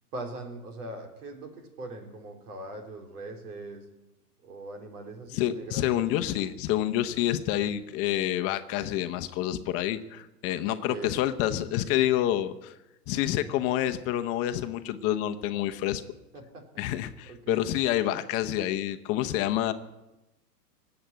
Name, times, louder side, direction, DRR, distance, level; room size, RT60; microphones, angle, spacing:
voice 1, 0.1-3.9 4.4-6.0 10.7-11.2 16.3-16.8 17.3-17.6, right 2 dB, 70° right, 4 dB, 3.9 m, -41 dB
voice 2, 5.3-12.8 13.1-16.0 16.8-19.7, left 12 dB, 30° left, 8 dB, 0.8 m, -28 dB
18.5 x 7.9 x 9.0 m, 0.98 s
hypercardioid pair, 125°, 48 cm